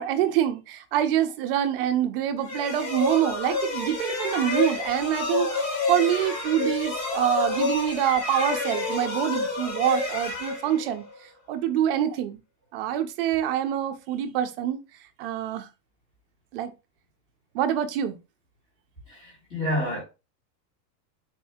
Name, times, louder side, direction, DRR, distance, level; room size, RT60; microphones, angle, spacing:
voice 1, 0.0-11.0 11.5-12.4 12.7-14.8 15.2-15.7 16.5-16.7 17.5-18.2, right 10 dB, 40° right, 0.5 m, -26 dB
sound 1, 2.4-11.2, left 3 dB, 60° left, 1.9 m, -29 dB
voice 2, 19.1-20.0, left 1 dB, 20° left, 1.6 m, -29 dB
4.2 x 2.6 x 3.5 m
supercardioid pair, 160°, 49 cm